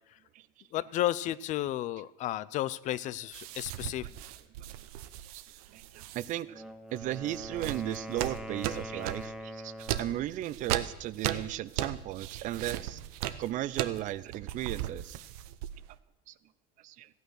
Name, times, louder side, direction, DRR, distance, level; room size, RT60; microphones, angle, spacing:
voice 1, 0.7-4.0, left 14 dB, 45° left, 19 dB, 0.5 m, -32 dB
sound 1, 3.3-6.3 7.0-9.3 9.8-16.0, right 12 dB, 80° right, 0.8 m, -37 dB
voice 2, 5.7-6.5 6.9-13.0 13.4-15.2 16.3-16.4 16.8-17.1, right 14 dB, 45° right, 18 dB, 0.5 m, -35 dB
Wind instrument woodwind instrument, 6.4-10.2, equal, ahead, 0.8 m, -43 dB
14.5 x 9.2 x 6.4 m, 0.90 s
supercardioid pair, 130°, 18 cm